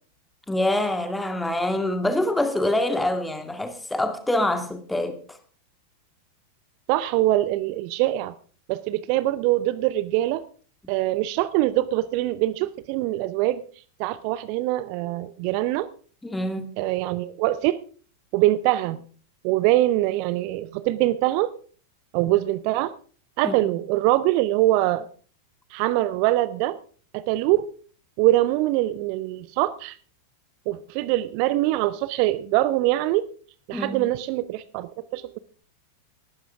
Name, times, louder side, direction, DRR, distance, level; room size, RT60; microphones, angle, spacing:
voice 1, 0.5-5.2 16.2-16.7 23.4-23.7 33.7-34.0, left 1 dB, 5° left, 2.1 m, -25 dB
voice 2, 6.9-8.3 8.7-10.4 10.9-13.6 14.0-15.9 16.8-17.8 18.3-19.0 19.4-21.5 22.1-22.9 23.4-25.1 25.7-26.8 27.1-27.7 28.2-30.0 30.7-33.2 33.7-35.4, right 16 dB, 45° right, 0.6 m, -23 dB
19.0 x 12.0 x 3.6 m
figure-of-eight pair, 90°, 0 cm